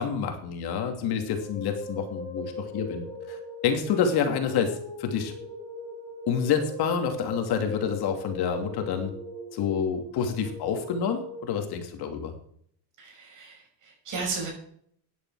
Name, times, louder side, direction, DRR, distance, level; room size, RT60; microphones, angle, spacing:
voice 1, 0.0-5.3 6.3-9.1 9.5-12.3, left 7 dB, 65° left, 5 dB, 2.6 m, -28 dB
sound 1, 1.1-11.4, left 1 dB, 15° left, 4.4 m, -39 dB
voice 2, 13.0-14.5, right 4 dB, 45° right, 1 dB, 6.5 m, -35 dB
15.0 x 10.5 x 4.8 m, 0.63 s
cardioid pair, 170°, 42 cm